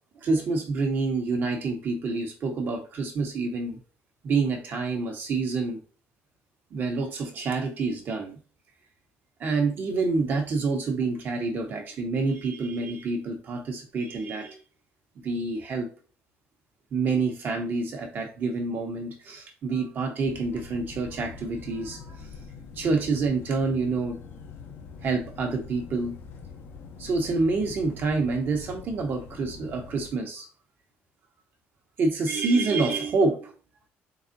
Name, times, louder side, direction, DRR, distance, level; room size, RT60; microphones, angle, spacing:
voice 1, 0.2-3.8 4.2-5.8 6.7-8.4 9.4-14.6 15.2-15.9 16.9-22.2 22.8-24.2 25.0-26.2 27.0-30.5 32.0-33.5, right 3 dB, 45° right, 3 dB, 1.1 m, -27 dB
sound 1, 20.2-30.1, left 5 dB, 50° left, 0.6 m, -44 dB
3.9 x 3.6 x 2.6 m, 0.38 s
cardioid pair, 125°, 5 cm